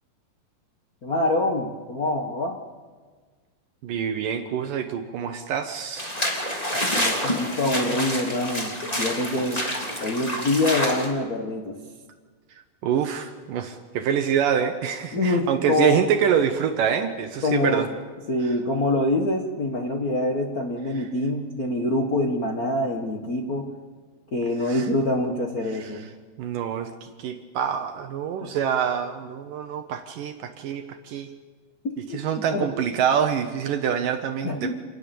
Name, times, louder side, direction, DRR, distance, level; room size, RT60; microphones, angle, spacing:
voice 1, 1.0-2.6 6.7-8.7 9.0-9.6 10.0-11.7 15.1-16.0 17.4-17.9 18.3-23.7 24.3-26.1 28.4-28.5 31.8-32.2 32.5-32.7 34.4-34.7, left 2 dB, 65° left, 0 dB, 0.9 m, -25 dB
voice 2, 3.8-6.2 12.5-17.9 18.4-18.6 20.9-21.1 24.6-24.9 25.7-26.1 26.4-31.3 32.1-34.7, right 8 dB, 70° right, 7 dB, 2.5 m, -26 dB
sound 1, 6.0-11.1, left 1 dB, 10° left, 3.2 m, -27 dB
27.5 x 19.5 x 7.1 m, 1.5 s
omnidirectional pair, 4.2 m